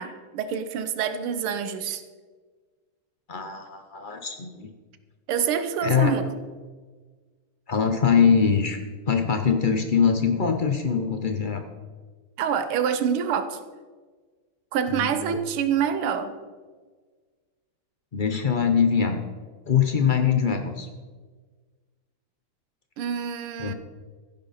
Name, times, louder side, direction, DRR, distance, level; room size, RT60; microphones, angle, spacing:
voice 1, 0.0-2.0 5.3-6.3 12.4-13.6 14.7-16.3 23.0-23.7, right 8 dB, 80° right, 10 dB, 1.8 m, -26 dB
voice 2, 3.3-4.7 5.8-6.1 7.7-8.8 9.1-11.6 14.9-15.3 18.1-19.2 19.7-20.9 23.6-23.7, left 6 dB, 90° left, 5 dB, 0.4 m, -23 dB
15.0 x 11.0 x 4.2 m, 1.4 s
omnidirectional pair, 2.4 m